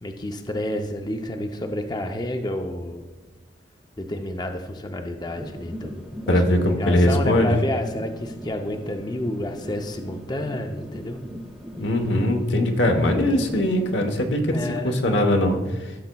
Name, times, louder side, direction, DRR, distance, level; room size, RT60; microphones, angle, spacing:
voice 1, 0.0-3.0 4.0-6.4 6.8-11.2 14.4-14.9, left 1 dB, 25° left, 4 dB, 0.5 m, -30 dB
sound 1, 5.3-14.3, equal, 5° right, 1.0 m, -39 dB
voice 2, 6.3-7.5 11.8-14.6 14.8-16.1, left 1 dB, 90° left, 4 dB, 1.0 m, -21 dB
14.5 x 6.6 x 2.2 m, 1.2 s
head